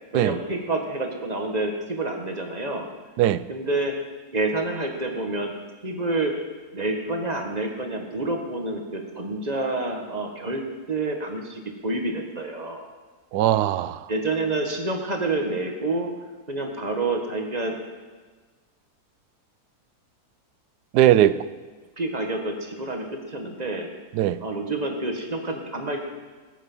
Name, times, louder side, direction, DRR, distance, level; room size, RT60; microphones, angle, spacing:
voice 1, 0.1-2.9 3.5-3.9 4.3-5.5 5.8-6.3 6.7-10.6 10.9-12.9 14.1-16.1 16.5-17.7 22.0-23.9 24.4-26.1, right 2 dB, 25° right, 1.6 m, -28 dB
voice 2, 13.3-14.1 20.9-21.4 24.1-24.4, right 12 dB, 80° right, 1.1 m, -20 dB
19.0 x 8.5 x 5.6 m
omnidirectional pair, 1.7 m